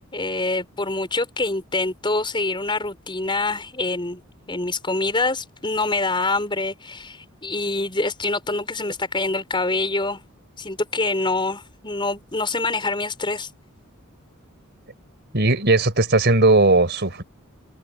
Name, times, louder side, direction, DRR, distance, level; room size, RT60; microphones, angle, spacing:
voice 1, 0.1-4.2 4.5-10.2 10.6-13.5, left 3 dB, 25° left, 4.7 m, -25 dB
voice 2, 15.3-17.2, right 2 dB, 55° right, 4.2 m, -17 dB
head